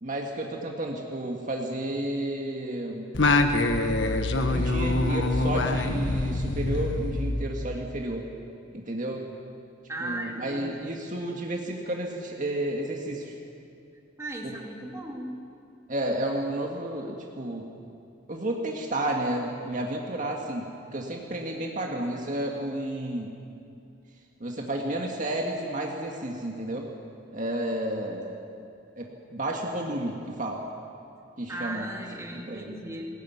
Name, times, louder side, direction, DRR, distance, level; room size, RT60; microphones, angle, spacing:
voice 1, 0.0-3.1 4.5-8.3 8.7-9.3 10.0-13.3 14.4-14.6 15.9-17.7 18.3-23.3 24.4-26.9 27.3-28.4 29.0-30.7 31.4-31.9 32.3-32.7, right 1 dB, 45° right, 0 dB, 2.0 m, -31 dB
Singing, 3.1-7.9, left 2 dB, 75° left, 1.4 m, -25 dB
voice 2, 9.9-11.0 14.2-15.3 31.5-33.1, right 1 dB, 15° right, 0 dB, 2.6 m, -37 dB
20.5 x 18.0 x 9.5 m, 2.6 s
head